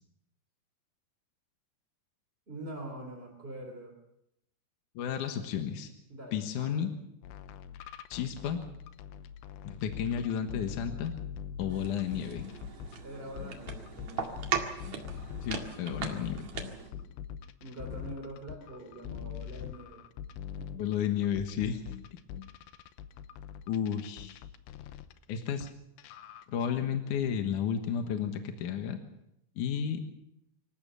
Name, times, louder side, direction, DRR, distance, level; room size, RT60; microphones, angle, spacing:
voice 1, 2.5-3.9 6.1-6.9 13.0-14.3 16.5-17.1 17.6-20.0 20.6-20.7 21.6-21.8, right 1 dB, 15° right, 1 dB, 2.6 m, -44 dB
voice 2, 5.0-5.9 6.3-6.9 8.1-8.6 9.6-11.1 11.6-12.5 15.4-16.4 20.8-21.8 23.7-24.4 25.3-25.7 26.5-29.0 29.6-30.0, left 8 dB, 60° left, 5 dB, 2.3 m, -32 dB
sound 1, 7.2-13.0 13.4-25.7 26.0-26.5, left 9 dB, 85° left, 3.1 m, -43 dB
sound 2, 11.7-16.9, right 7 dB, 50° right, 2.7 m, -38 dB
26.0 x 15.0 x 6.8 m, 0.81 s
omnidirectional pair, 4.9 m